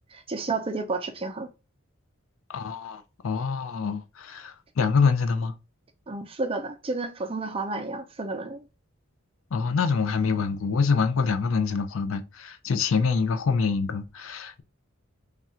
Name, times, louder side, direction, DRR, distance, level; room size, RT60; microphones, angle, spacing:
voice 1, 0.1-1.5 6.1-8.6, right 3 dB, 25° right, 0.5 m, -31 dB
voice 2, 2.5-5.5 9.5-14.6, left 5 dB, 70° left, 0.4 m, -25 dB
3.4 x 2.4 x 4.2 m
head